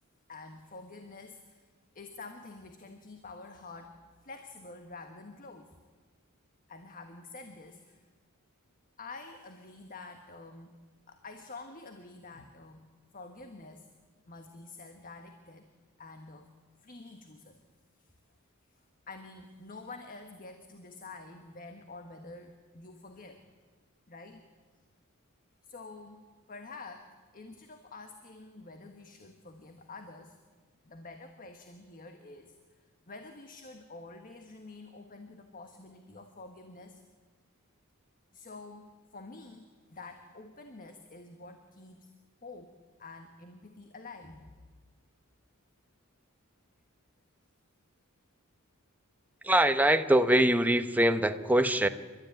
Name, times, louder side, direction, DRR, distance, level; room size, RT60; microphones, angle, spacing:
voice 1, 0.3-1.7 1.9-4.0 4.2-5.7 6.7-8.0 9.0-10.7 11.1-12.9 13.1-13.9 14.3-15.7 16.0-16.5 16.8-17.6 18.0-18.1 18.7-23.4 24.1-24.4 25.6-27.1 27.3-30.4 30.8-37.0 38.3-42.1 42.4-42.7 43.0-44.5, left 3 dB, 40° left, 6 dB, 1.4 m, -48 dB
voice 2, 49.4-51.9, right 1 dB, 10° right, 8 dB, 0.9 m, -23 dB
29.5 x 13.0 x 9.4 m, 1.4 s
head